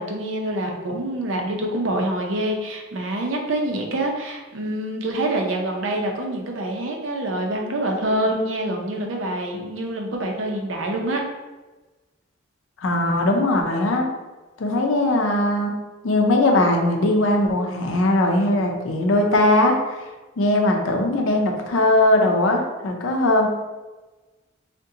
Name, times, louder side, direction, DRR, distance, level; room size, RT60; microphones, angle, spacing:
voice 1, 0.0-11.2, right 1 dB, 75° right, 1 dB, 0.5 m, -26 dB
voice 2, 12.8-14.1 14.6-15.7 16.0-20.0 20.4-23.5, left 1 dB, 90° left, 2 dB, 0.5 m, -19 dB
3.6 x 2.2 x 2.7 m, 1.2 s
head